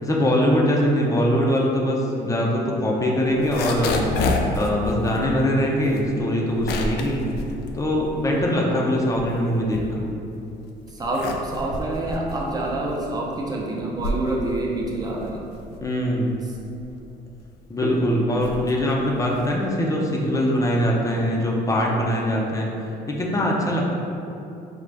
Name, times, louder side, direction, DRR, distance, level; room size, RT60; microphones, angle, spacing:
voice 1, 0.0-4.1 4.5-7.3 7.7-10.0 15.8-16.4 17.7-22.7 23.1-23.9, equal, 20° left, -2 dB, 0.6 m, -22 dB
sound 1, 3.3-8.6 8.9-10.4 10.8-19.6, left 2 dB, 75° left, 0.4 m, -30 dB
voice 2, 10.9-15.5 17.8-18.0 21.8-22.0, right 2 dB, 20° right, -3 dB, 0.7 m, -27 dB
5.2 x 2.4 x 3.4 m, 2.8 s
cardioid pair, 110°, 17 cm